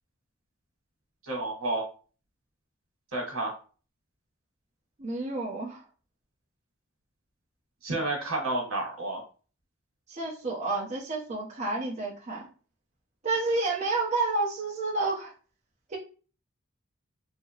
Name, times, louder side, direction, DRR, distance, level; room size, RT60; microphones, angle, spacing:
voice 1, 1.2-1.8 3.1-3.5 7.8-9.2, right 2 dB, 85° right, -1 dB, 1.2 m, -30 dB
voice 2, 5.0-5.8 10.1-12.5 13.2-15.3 15.9-16.0, right 3 dB, 35° right, -4 dB, 0.6 m, -30 dB
2.7 x 2.0 x 2.7 m, 0.37 s
head